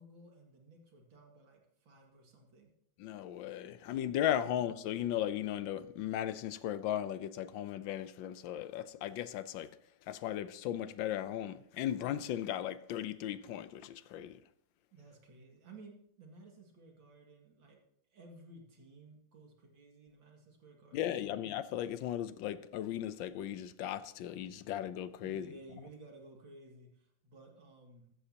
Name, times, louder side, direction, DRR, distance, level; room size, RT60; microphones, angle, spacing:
voice 1, 0.0-2.7 14.9-17.8 18.1-21.5 25.2-28.1, right 2 dB, 90° right, 3.0 m, -56 dB
voice 2, 3.0-9.7 10.1-14.4 20.9-25.5, left 11 dB, 80° left, 1.4 m, -36 dB
14.5 x 12.5 x 2.9 m
omnidirectional pair, 2.1 m